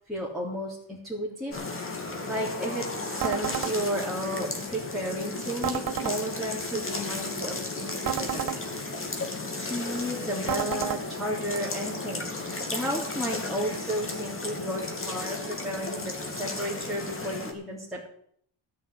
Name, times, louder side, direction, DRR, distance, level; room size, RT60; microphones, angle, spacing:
voice 1, 0.1-1.5 2.3-8.5 9.6-18.1, equal, ahead, -6 dB, 3.4 m, -33 dB
sound 1, 1.5-17.5, left 3 dB, 25° left, 2.5 m, -34 dB
sound 2, 3.2-3.7 5.6-6.2 8.0-8.6 10.5-11.0, right 10 dB, 45° right, 0.7 m, -30 dB
13.0 x 6.5 x 9.8 m, 0.65 s
cardioid pair, 110°, 47 cm